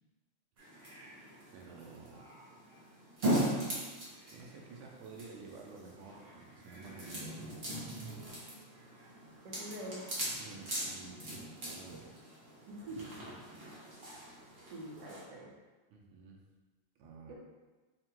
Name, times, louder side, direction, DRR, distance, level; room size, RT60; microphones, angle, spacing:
sound 1, 0.6-15.2, right 1 dB, 45° right, 0.8 m, -40 dB
voice 1, 0.6-0.9 1.5-2.3 3.1-3.2 4.3-7.7 10.4-12.2 15.9-16.4 17.0-17.3, right 4 dB, 85° right, -1 dB, 1.5 m, -51 dB
voice 2, 9.4-10.0 12.7-13.0 14.7-15.5 17.3-17.4, right 1 dB, 65° right, -4 dB, 1.3 m, -44 dB
3.7 x 2.1 x 4.3 m, 1.2 s
omnidirectional pair, 2.3 m